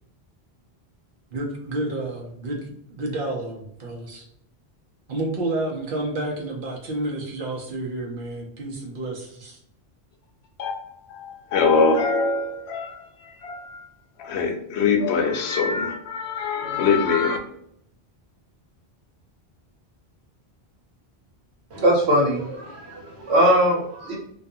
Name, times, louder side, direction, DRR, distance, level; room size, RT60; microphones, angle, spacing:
voice 1, 1.3-4.3 5.1-9.6, right 2 dB, 60° right, 0.8 m, -30 dB
voice 2, 11.1-13.9 14.2-17.4, left 4 dB, 85° left, 0.8 m, -23 dB
voice 3, 21.7-24.1, equal, 85° right, 1.2 m, -21 dB
2.5 x 2.3 x 2.6 m
omnidirectional pair, 1.1 m